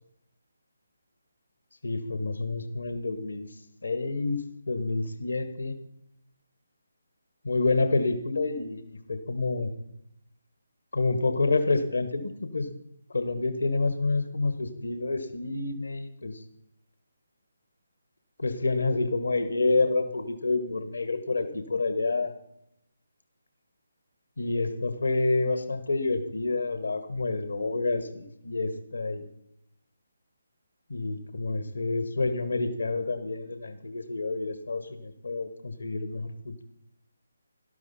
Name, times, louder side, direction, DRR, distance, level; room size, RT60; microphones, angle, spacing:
voice 1, 1.8-5.7 7.4-9.7 10.9-12.7 13.1-16.4 18.4-22.3 24.4-29.3 30.9-36.6, left 3 dB, 70° left, 9 dB, 1.6 m, -28 dB
18.5 x 12.5 x 4.3 m, 0.78 s
figure-of-eight pair, 145°, 0 cm